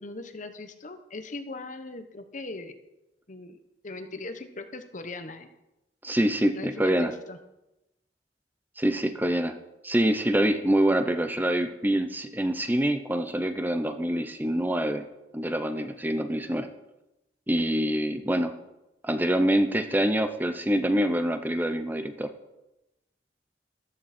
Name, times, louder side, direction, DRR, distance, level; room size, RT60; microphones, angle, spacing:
voice 1, 0.0-2.7 3.3-3.6 3.8-5.5 6.5-7.4, left 2 dB, 45° left, 8 dB, 1.1 m, -39 dB
voice 2, 6.0-7.1 8.8-9.5 9.8-15.1 15.3-16.7 17.5-18.5 19.0-22.3, right 1 dB, 10° right, 8 dB, 0.7 m, -25 dB
14.5 x 12.5 x 4.4 m, 0.94 s
head